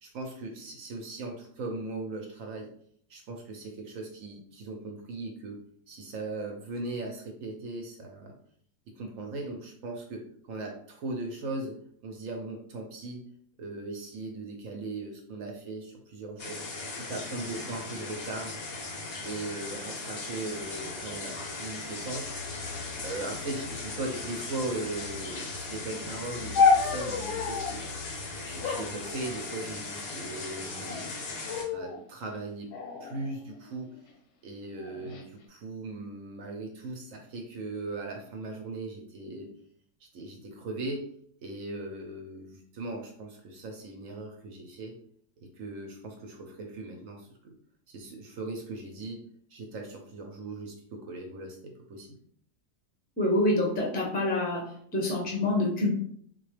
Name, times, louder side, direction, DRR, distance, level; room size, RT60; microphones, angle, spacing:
voice 1, 0.0-2.7 3.1-5.6 5.9-8.3 9.0-11.8 12.0-13.2 13.6-16.6 16.9-18.6 19.2-22.3 23.0-27.8 28.4-31.1 31.7-32.7 33.0-33.9 34.4-39.5 40.1-41.1 41.4-44.9 45.5-47.5 47.9-49.2 49.5-52.2, right 2 dB, 65° right, 1 dB, 0.9 m, -38 dB
sound 1, 16.4-31.6, left 3 dB, 60° left, 0.7 m, -38 dB
sound 2, 26.5-27.8 28.6-29.8 30.6-31.1 31.5-32.0 32.7-34.0 34.8-35.2, left 5 dB, 85° left, 1.2 m, -29 dB
voice 2, 53.2-54.6 54.9-56.0, left 1 dB, 10° left, -2 dB, 0.4 m, -26 dB
3.9 x 2.2 x 3.2 m, 0.62 s
omnidirectional pair, 1.7 m